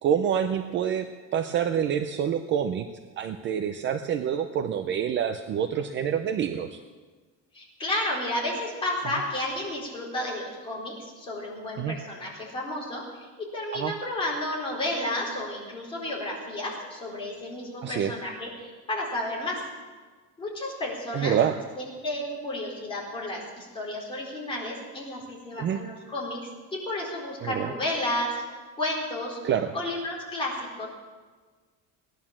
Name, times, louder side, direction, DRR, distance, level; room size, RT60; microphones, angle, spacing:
voice 1, 0.0-2.9 3.2-6.8 11.8-12.0 13.7-13.9 17.8-18.1 21.1-21.6 25.6-25.8 27.4-27.7 29.4-29.7, right 8 dB, 35° right, 7 dB, 0.6 m, -27 dB
voice 2, 7.5-19.6 20.4-21.4 21.8-26.4 26.7-28.4 28.8-29.4 29.7-30.9, left 1 dB, 15° left, -4 dB, 4.3 m, -32 dB
17.5 x 11.0 x 7.3 m, 1.4 s
cardioid pair, 180°, 34 cm